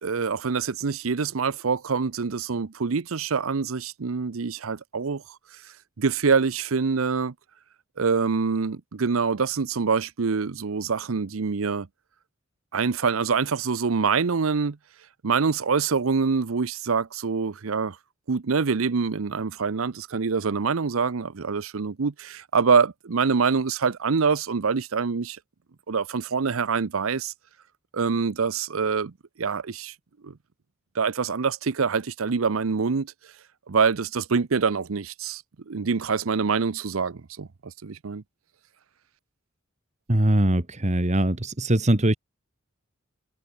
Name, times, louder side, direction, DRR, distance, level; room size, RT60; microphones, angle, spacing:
voice 1, 0.0-5.2 6.0-7.3 8.0-11.9 12.7-14.8 15.2-18.0 18.3-25.4 25.9-27.3 27.9-29.1 29.4-29.9 30.2-30.3 31.0-33.1 33.7-35.4 35.7-38.2, right 5 dB, 85° right, 0.7 m, -25 dB
voice 2, 40.1-42.2, right 1 dB, 35° right, 1.7 m, -21 dB
head